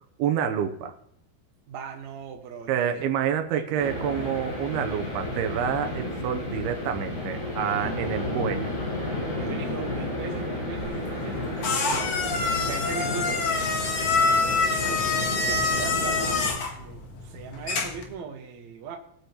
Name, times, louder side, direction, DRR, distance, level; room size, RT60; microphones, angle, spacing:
voice 1, 0.2-0.9 2.7-8.7, right 8 dB, 85° right, 2.7 m, -28 dB
voice 2, 1.7-3.1 3.5-3.6 4.0-4.4 5.8-6.1 7.6-8.4 9.3-11.4 11.7-12.3 12.6-14.5 14.8-19.0, right 6 dB, 55° right, 2.4 m, -40 dB
sound 1, 3.8-16.5, left 1 dB, 45° left, 6.4 m, -32 dB
sound 2, 10.8-18.1, left 4 dB, 70° left, 1.3 m, -26 dB
20.5 x 8.2 x 3.0 m
omnidirectional pair, 4.6 m